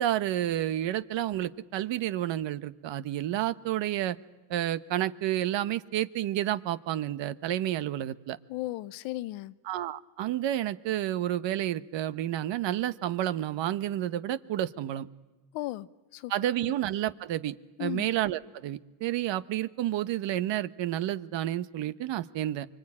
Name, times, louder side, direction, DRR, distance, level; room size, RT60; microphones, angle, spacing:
voice 1, 0.0-4.2 4.5-8.4 9.7-15.1 16.3-22.7, right 12 dB, 70° right, 12 dB, 1.1 m, -30 dB
voice 2, 8.5-9.5 15.5-16.3 17.8-18.1, left 17 dB, 85° left, 15 dB, 0.9 m, -35 dB
24.5 x 24.5 x 8.7 m, 1.2 s
supercardioid pair, 80°, 46 cm